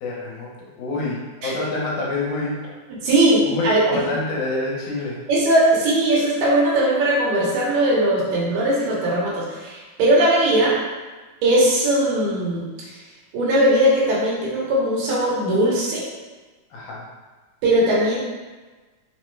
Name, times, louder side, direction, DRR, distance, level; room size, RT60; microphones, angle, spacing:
voice 1, 0.0-2.7 3.4-5.2 16.7-17.1, left 2 dB, 75° left, -4 dB, 2.1 m, -27 dB
voice 2, 3.0-4.0 5.3-10.7 11.4-12.6 13.3-16.1 17.6-18.2, right 1 dB, 85° right, -5 dB, 2.6 m, -19 dB
5.5 x 2.1 x 3.1 m, 1.3 s
omnidirectional pair, 3.8 m